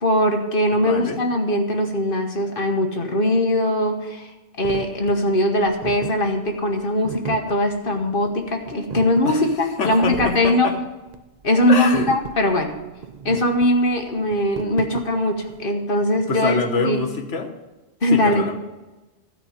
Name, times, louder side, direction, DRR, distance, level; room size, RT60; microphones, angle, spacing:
voice 1, 0.0-4.3 4.6-10.7 11.4-12.7 13.2-17.0 18.0-18.5, left 1 dB, 50° left, 3 dB, 1.4 m, -21 dB
voice 2, 0.8-1.2 9.2-9.4 9.8-10.7 11.7-12.1 16.3-17.5 18.1-18.6, left 4 dB, 85° left, 5 dB, 1.5 m, -25 dB
sound 1, 4.6-15.6, right 7 dB, 50° right, 0.5 m, -35 dB
12.5 x 5.3 x 8.7 m, 1.1 s
omnidirectional pair, 1.2 m